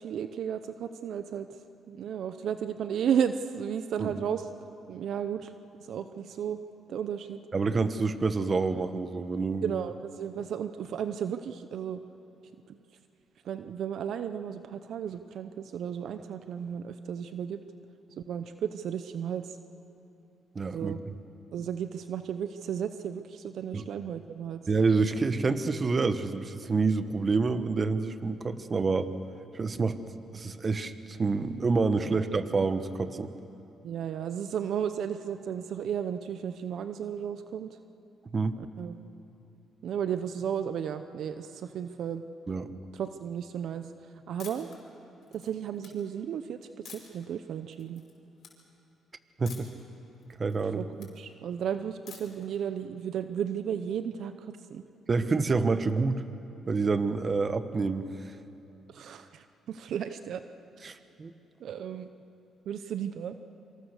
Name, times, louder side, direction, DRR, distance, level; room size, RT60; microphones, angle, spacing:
voice 1, 0.0-1.5 1.9-4.5 4.9-5.5 5.9-6.6 6.9-7.4 9.6-12.0 12.7-12.8 13.4-17.6 18.3-19.5 20.7-21.0 21.5-24.6 32.0-32.2 33.8-37.8 38.6-39.0 39.8-42.2 42.9-43.9 44.3-44.7 45.3-46.6 46.8-48.0 50.8-54.8 58.9-60.4 60.8-60.9 61.6-62.1 62.7-63.4, right 8 dB, 70° right, 10 dB, 0.8 m, -34 dB
voice 2, 7.5-9.7 20.5-20.9 23.7-23.8 24.7-29.1 29.5-30.0 30.3-33.3 38.3-38.6 42.5-42.7 49.4-49.7 50.4-50.8 55.1-56.2 56.7-58.0 60.8-61.3, right 4 dB, 35° right, 11 dB, 1.2 m, -27 dB
sound 1, 44.4-44.8 45.2-45.9 46.9-47.3 47.7-48.1 48.4-48.5 49.5-49.8 50.2-51.1 52.1-52.4, left 7 dB, 60° left, 5.3 m, -48 dB
26.5 x 25.5 x 6.7 m, 2.8 s
cardioid pair, 90°, 0 cm